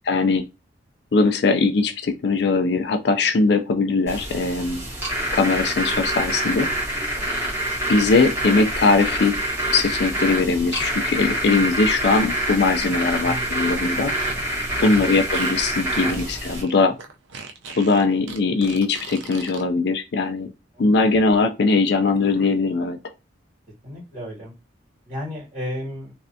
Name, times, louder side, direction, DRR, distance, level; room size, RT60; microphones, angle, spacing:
voice 1, 0.0-0.5 1.1-4.8 5.3-6.7 7.9-9.4 9.7-14.1 14.8-17.0 17.8-20.5 20.8-23.0, left 3 dB, 60° left, 0.4 m, -20 dB
sound 1, 4.1-16.6, right 1 dB, 15° right, 1.3 m, -26 dB
voice 2, 13.2-13.7 14.8-15.0 16.0-16.2 16.5-16.6 20.7-20.9 23.8-24.5 25.1-26.1, equal, 40° right, 2.0 m, -34 dB
Fart, 14.1-19.6, right 4 dB, 80° right, 0.5 m, -39 dB
3.2 x 2.5 x 2.6 m
head